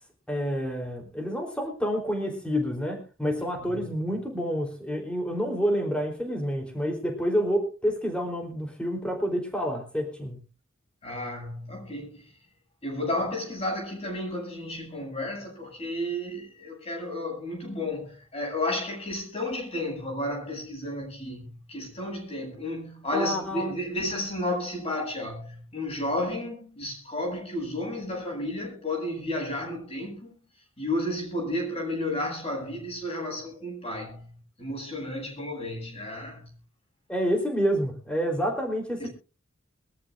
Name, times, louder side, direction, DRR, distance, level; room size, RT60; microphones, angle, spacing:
voice 1, 0.3-10.4 23.1-23.7 37.1-39.1, equal, 5° left, 3.7 m, -28 dB
voice 2, 11.0-12.3 12.8-30.3 30.8-34.3 34.6-36.5 39.0-39.1, left 1 dB, 30° left, 7.5 m, -32 dB
23.0 x 13.5 x 2.6 m
head